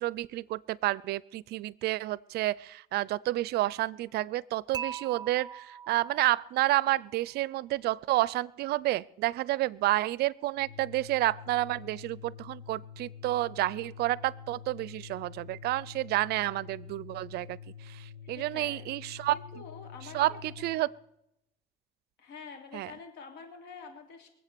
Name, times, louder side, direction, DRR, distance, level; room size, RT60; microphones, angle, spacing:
voice 1, 0.0-17.6 17.9-18.0 18.3-19.4 20.1-20.9 22.7-22.9, right 16 dB, 70° right, 23 dB, 0.5 m, -30 dB
Dishes pots and pans / Chink clink, 4.7-6.9, right 7 dB, 25° right, 0.7 m, -41 dB
Organ, 10.5-20.8, left 7 dB, 35° left, 2.9 m, -47 dB
voice 2, 18.3-19.0 19.3-20.4 20.7-20.8 22.2-24.3, left 5 dB, 80° left, 4 dB, 3.2 m, -47 dB
22.5 x 8.0 x 6.8 m, 0.81 s
cardioid pair, 110°, 17 cm